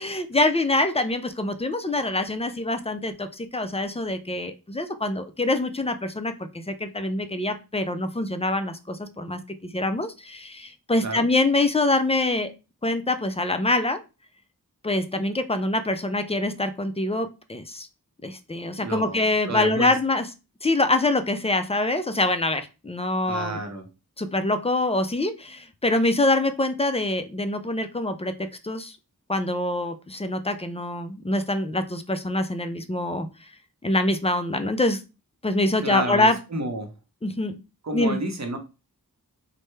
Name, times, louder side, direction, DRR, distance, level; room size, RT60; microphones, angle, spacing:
voice 1, 0.0-12.5 12.8-14.0 14.8-17.9 18.2-20.3 20.6-23.6 24.2-28.3 28.6-29.0 29.3-33.3 33.8-35.0 35.4-36.4 37.2-37.5 37.9-38.2, left 2 dB, 15° left, 9 dB, 0.4 m, -25 dB
voice 2, 18.8-19.9 23.3-23.9 35.8-36.9 37.8-38.6, right 2 dB, 45° right, 4 dB, 0.8 m, -30 dB
3.2 x 2.1 x 3.1 m, 0.29 s
wide cardioid pair, 40°, 37 cm